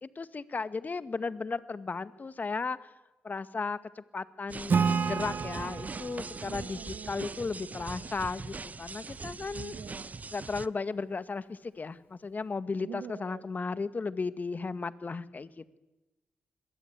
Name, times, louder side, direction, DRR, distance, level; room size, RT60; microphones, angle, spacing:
voice 1, 0.0-2.8 3.2-9.7 10.3-15.8, left 4 dB, 45° left, 12 dB, 2.0 m, -35 dB
sound 1, 4.5-10.7, right 4 dB, 40° right, 0.9 m, -41 dB
Acoustic guitar / Strum, 4.7-8.1, right 5 dB, 60° right, 2.4 m, -32 dB
voice 2, 6.4-7.5 7.9-8.1 9.5-10.2 12.8-13.4, right 8 dB, 75° right, 10 dB, 1.7 m, -46 dB
26.5 x 22.0 x 9.7 m, 1.0 s
supercardioid pair, 40°, 4 cm